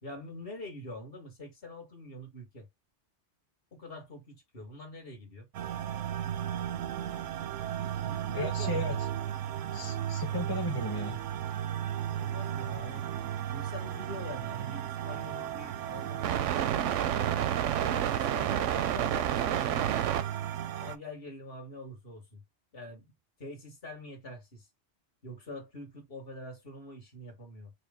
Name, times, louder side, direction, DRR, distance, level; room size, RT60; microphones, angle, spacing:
voice 1, 0.0-2.7 3.7-5.5 7.9-9.0 12.1-13.1 13.5-17.0 17.8-19.9 20.7-22.4 22.7-23.1 23.4-24.7 25.2-27.7, left 2 dB, 50° left, 1.8 m, -45 dB
sound 1, 5.5-21.0, right 10 dB, 90° right, 0.9 m, -32 dB
voice 2, 8.3-9.1 9.7-11.2, left 2 dB, 20° left, 0.8 m, -35 dB
5.0 x 2.0 x 3.6 m
omnidirectional pair, 1.2 m